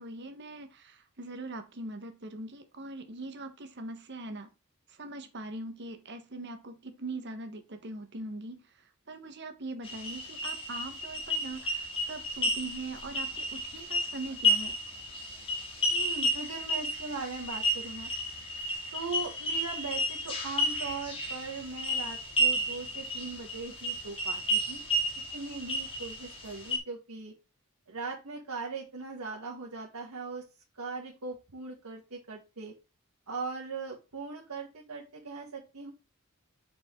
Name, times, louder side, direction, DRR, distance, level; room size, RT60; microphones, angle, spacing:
voice 1, 0.0-4.5 5.0-8.6 9.1-14.8, right 2 dB, 55° right, 1.2 m, -41 dB
sound 1, 9.8-26.8, equal, 25° left, 2.2 m, -32 dB
voice 2, 15.9-18.1 18.9-24.8 25.3-27.3 27.9-30.4 30.7-32.7 33.3-35.9, right 4 dB, 90° right, 1.5 m, -39 dB
6.7 x 4.8 x 3.7 m
head